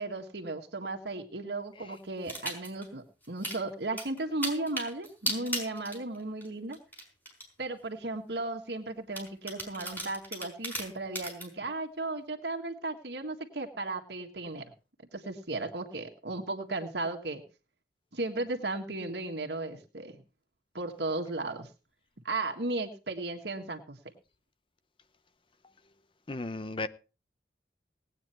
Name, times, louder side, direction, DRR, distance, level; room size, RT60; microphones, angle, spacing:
voice 1, 0.0-6.8 7.6-14.6 15.1-17.4 18.1-20.2 20.7-21.7 22.2-24.0, right 2 dB, 65° right, 1.7 m, -35 dB
sound 1, 2.2-2.9 3.2-3.6 4.0-6.5 6.7-7.4 8.1-8.2 9.1-11.5, right 1 dB, 10° left, 5.0 m, -36 dB
voice 2, 26.3-26.9, left 2 dB, 30° left, 0.7 m, -34 dB
18.5 x 9.2 x 4.5 m
head